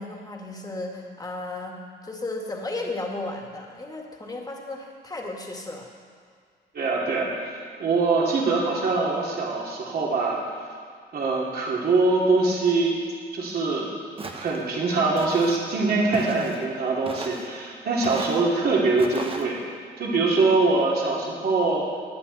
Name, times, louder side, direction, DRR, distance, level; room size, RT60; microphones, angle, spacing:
voice 1, 0.0-5.9, left 2 dB, 20° left, 1 dB, 2.0 m, -34 dB
voice 2, 6.7-7.3 7.8-10.4 11.1-12.9 13.3-13.9 14.3-19.6 20.0-21.8, right 3 dB, 55° right, -4 dB, 3.0 m, -23 dB
Walk footsteps, 14.2-14.6 15.2-15.6 16.1-16.6 17.1-17.5 18.0-18.4 19.0-19.5, right 3 dB, 30° right, 1.2 m, -37 dB
20.5 x 8.5 x 4.2 m, 2.1 s
cardioid pair, 100°, 19 cm